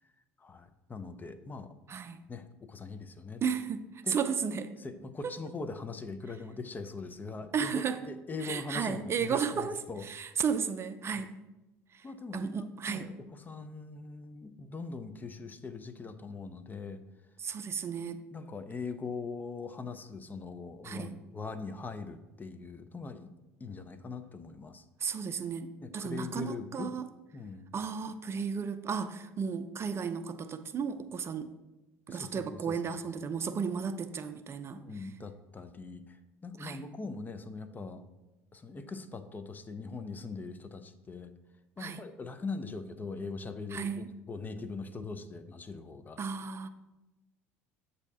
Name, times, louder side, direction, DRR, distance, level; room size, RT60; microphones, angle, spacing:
voice 1, 0.4-1.7 2.3-3.4 4.0-4.2 4.8-10.1 12.0-13.1 13.5-17.0 18.3-23.3 23.6-24.8 25.8-26.9 27.3-27.7 32.1-32.8 34.7-38.0 38.5-41.3 41.8-46.2, left 4 dB, 25° left, 10 dB, 0.5 m, -41 dB
voice 2, 1.9-2.2 3.4-4.7 5.2-5.4 7.5-8.1 8.4-11.3 11.9-12.1 12.3-13.1 17.4-18.2 20.8-21.2 25.0-27.1 27.7-31.5 32.1-35.1 36.6-36.8 41.8-42.0 43.7-44.1 46.2-46.7, right 6 dB, 35° right, 10 dB, 0.4 m, -34 dB
8.1 x 2.7 x 5.4 m, 1.0 s
hypercardioid pair, 70°, 7 cm